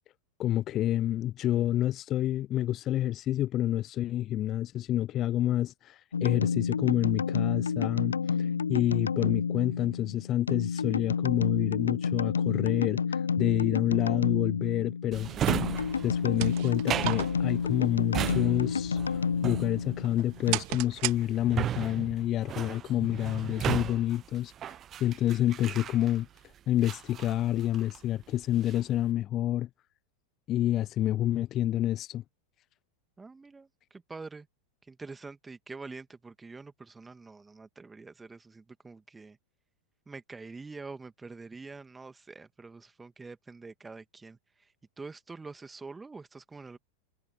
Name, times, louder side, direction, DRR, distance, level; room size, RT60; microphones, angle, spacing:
voice 1, 0.4-15.3 16.0-24.7 25.0-26.3 26.7-29.7 30.5-32.2, left 13 dB, 30° left, 0.7 m, -28 dB
sound 1, 6.1-20.6, left 6 dB, 70° left, 0.7 m, -30 dB
Drawer open or close, 15.1-26.4 26.8-28.1 28.4-29.0, right 10 dB, 30° right, 0.7 m, -35 dB
sound 2, 16.1-21.8, right 35 dB, 45° right, 2.5 m, -38 dB
voice 2, 33.2-34.5 34.8-39.4 40.1-46.8, right 4 dB, 10° right, 2.3 m, -46 dB
figure-of-eight pair, 90°, 0 cm